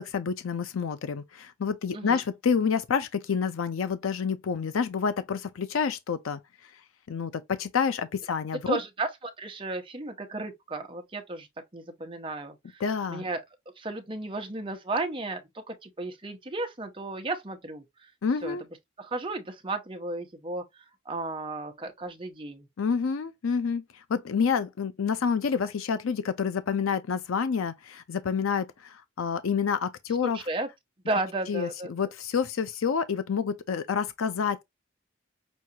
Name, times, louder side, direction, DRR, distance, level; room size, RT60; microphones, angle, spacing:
voice 1, 0.0-6.4 7.1-8.8 12.8-13.2 18.2-18.6 22.8-23.8 24.1-30.4 31.5-34.6, left 6 dB, 85° left, 0.5 m, -28 dB
voice 2, 8.7-11.5 11.7-12.8 13.1-13.4 13.8-17.8 18.4-18.6 19.0-20.6 21.1-22.7 30.2-30.7 31.0-31.9, right 2 dB, 25° right, 0.8 m, -34 dB
6.1 x 2.4 x 2.7 m
head